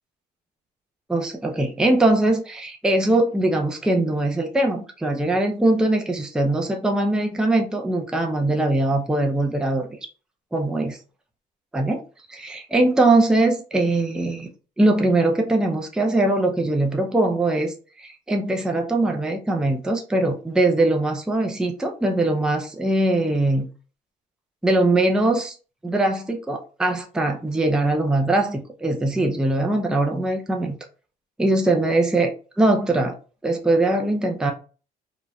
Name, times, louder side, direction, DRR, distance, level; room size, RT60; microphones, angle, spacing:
voice 1, 1.1-9.9 10.5-11.0 11.7-12.0 12.3-14.5 14.8-23.7 24.6-25.6 25.8-30.8 31.4-33.2 33.4-34.5, right 2 dB, 5° right, 2 dB, 0.5 m, -21 dB
3.0 x 2.6 x 2.3 m, 0.35 s
cardioid pair, 110°, 17 cm